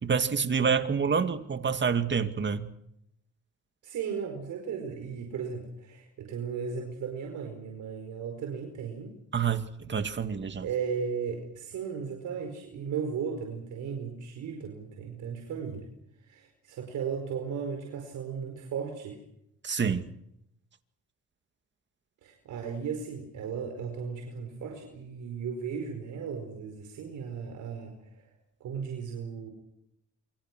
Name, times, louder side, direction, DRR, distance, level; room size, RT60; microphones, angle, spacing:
voice 1, 0.0-2.7 9.3-10.7 19.6-20.1, right 6 dB, 35° right, 9 dB, 2.3 m, -27 dB
voice 2, 3.8-9.1 10.6-15.9 16.2-19.2 22.2-28.3 28.6-29.5, right 6 dB, 80° right, 3 dB, 5.0 m, -36 dB
28.0 x 24.5 x 6.2 m, 0.77 s
cardioid pair, 90°, 30 cm